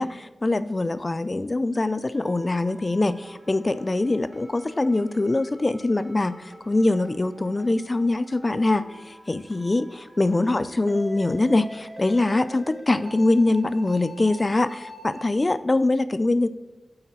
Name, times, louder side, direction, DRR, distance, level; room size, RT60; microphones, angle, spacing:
voice 1, 0.0-16.5, left 2 dB, 30° left, 13 dB, 0.4 m, -23 dB
sound 1, 2.1-15.2, equal, 30° right, 2.8 m, -45 dB
8.6 x 4.1 x 6.7 m, 1.2 s
wide cardioid pair, 110°, 0 cm